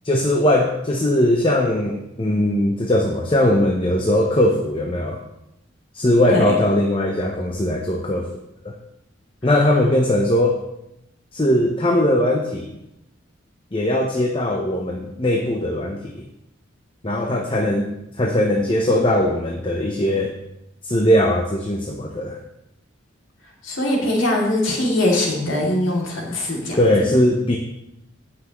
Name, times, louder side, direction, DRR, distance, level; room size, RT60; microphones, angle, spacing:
voice 1, 0.0-5.2 5.9-8.3 8.6-8.7 9.4-10.6 11.3-12.7 13.7-16.2 17.0-20.3 20.8-22.4 26.8-27.6, left 1 dB, 25° left, 2 dB, 0.8 m, -20 dB
voice 2, 23.6-26.8, left 1 dB, 85° left, -2 dB, 2.7 m, -21 dB
18.0 x 6.1 x 3.1 m, 0.84 s
head